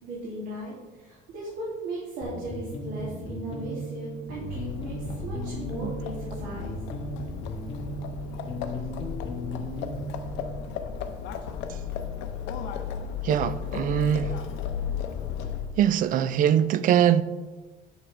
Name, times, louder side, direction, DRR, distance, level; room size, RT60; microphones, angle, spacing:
voice 1, 0.0-6.8, right 1 dB, 85° right, 2.9 m, -37 dB
sound 1, 2.2-10.6, equal, 30° left, 1.3 m, -36 dB
Livestock farm animals working animals, 4.3-15.9, left 7 dB, 80° left, 0.8 m, -35 dB
voice 2, 13.2-14.4 15.8-17.2, right 10 dB, 45° right, 0.4 m, -22 dB
11.0 x 6.4 x 3.4 m
cardioid pair, 160°, 19 cm